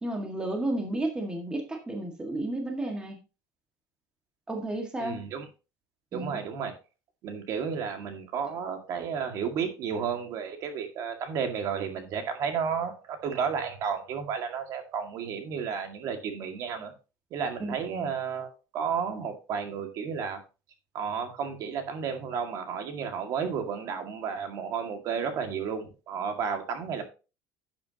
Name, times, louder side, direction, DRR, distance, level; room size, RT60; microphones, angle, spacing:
voice 1, 0.0-3.2 4.5-5.2 6.1-6.4 17.6-18.1, right 1 dB, 10° right, 3 dB, 1.8 m, -32 dB
voice 2, 5.0-5.5 6.1-6.7 7.2-16.9 17.3-20.4 20.9-27.1, right 6 dB, 50° right, 5 dB, 2.1 m, -32 dB
11.5 x 8.6 x 2.9 m, 0.31 s
cardioid pair, 160°, 7 cm